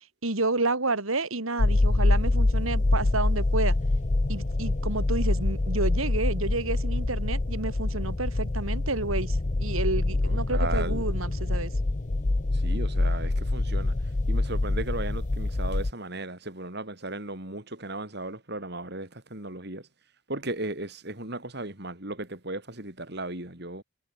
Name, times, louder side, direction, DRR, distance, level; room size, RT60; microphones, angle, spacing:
voice 1, 0.2-3.8 4.3-11.7, right 2 dB, 80° right, 2.9 m, -30 dB
sound 1, 1.6-15.9, left 2 dB, 35° left, 0.7 m, -25 dB
voice 2, 10.3-11.1 12.5-14.0 14.3-19.9 20.3-23.8, right 2 dB, 50° right, 4.0 m, -36 dB
head